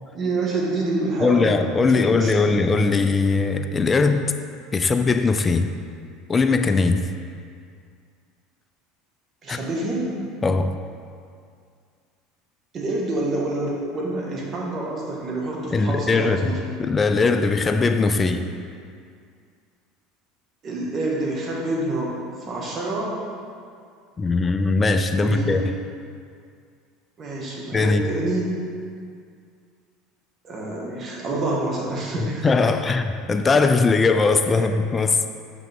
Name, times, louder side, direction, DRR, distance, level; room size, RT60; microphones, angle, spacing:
voice 1, 0.1-2.6 9.4-10.2 12.7-16.6 18.1-18.3 20.6-23.2 25.1-25.7 27.2-28.5 30.4-32.7 34.5-34.6, right 2 dB, 40° right, -3 dB, 1.5 m, -27 dB
voice 2, 1.2-4.3 4.7-5.7 6.3-7.1 9.5-9.6 10.4-10.7 15.7-18.4 24.2-25.6 27.7-28.1 32.4-35.3, left 4 dB, 25° left, 8 dB, 0.4 m, -20 dB
5.9 x 5.8 x 3.6 m, 2.3 s
supercardioid pair, 95°, 0 cm